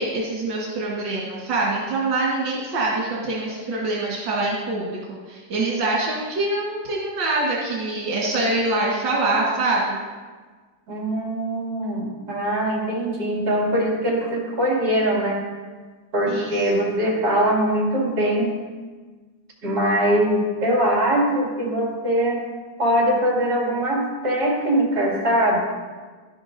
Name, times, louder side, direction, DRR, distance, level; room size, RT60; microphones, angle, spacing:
voice 1, 0.0-5.0 5.3-10.0 16.3-16.5, right 2 dB, 85° right, -5 dB, 2.3 m, -24 dB
voice 2, 10.9-15.4 16.1-18.6 19.6-22.4 22.8-25.6, right 1 dB, 60° right, -4 dB, 3.0 m, -22 dB
12.0 x 11.0 x 2.6 m, 1.4 s
omnidirectional pair, 2.0 m